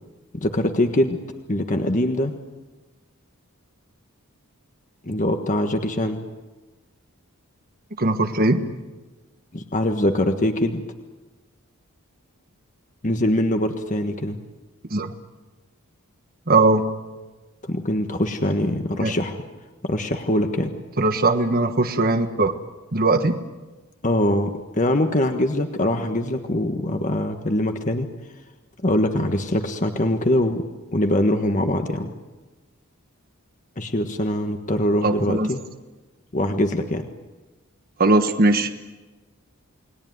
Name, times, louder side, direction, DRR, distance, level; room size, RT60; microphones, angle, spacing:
voice 1, 0.3-1.2 1.5-2.3 5.0-6.2 9.5-10.8 13.0-14.4 17.6-19.4 19.8-20.7 24.0-28.1 28.8-30.6 30.9-32.1 33.8-35.6 36.3-37.0, left 1 dB, 35° left, 6 dB, 1.4 m, -23 dB
voice 2, 8.0-8.6 14.9-15.1 16.5-16.8 19.0-19.1 21.0-22.5 22.9-23.4 35.0-35.5 38.0-38.7, right 2 dB, 40° right, 7 dB, 1.4 m, -19 dB
29.5 x 20.5 x 9.4 m, 1.2 s
head